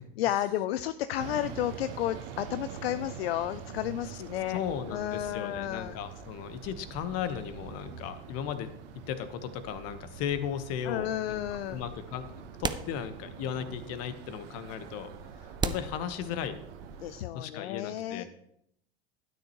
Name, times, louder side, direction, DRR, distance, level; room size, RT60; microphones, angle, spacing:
voice 1, 0.2-4.6 4.9-6.0 10.9-11.8 17.0-18.2, left 13 dB, 75° left, 13 dB, 0.5 m, -32 dB
sound 1, 1.2-17.3, right 7 dB, 65° right, 1.1 m, -45 dB
voice 2, 4.5-8.7 9.1-11.4 11.7-15.1 15.4-16.6 17.3-18.2, left 9 dB, 55° left, 11 dB, 1.1 m, -36 dB
sound 2, 12.6-13.5 13.9-14.0 14.7-14.8 15.6-16.8, right 5 dB, 15° right, 0.5 m, -35 dB
12.5 x 9.2 x 3.0 m, 0.74 s
hypercardioid pair, 80°, 30 cm